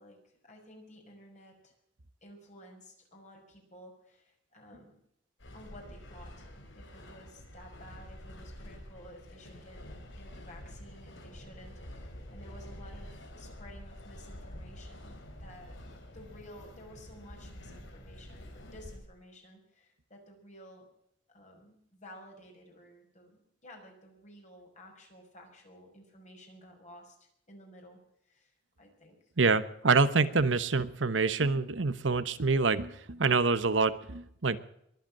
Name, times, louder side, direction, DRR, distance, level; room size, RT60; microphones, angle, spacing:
voice 1, 0.0-1.8 2.2-5.0 5.5-6.5 6.8-15.8 16.1-20.9 21.3-28.0 28.3-29.2, equal, 40° left, 2 dB, 5.8 m, -53 dB
sound 1, 5.4-19.0, equal, 90° left, 3.6 m, -48 dB
voice 2, 29.4-34.6, right 4 dB, 75° right, 13 dB, 1.1 m, -26 dB
22.5 x 8.3 x 7.4 m, 0.73 s
head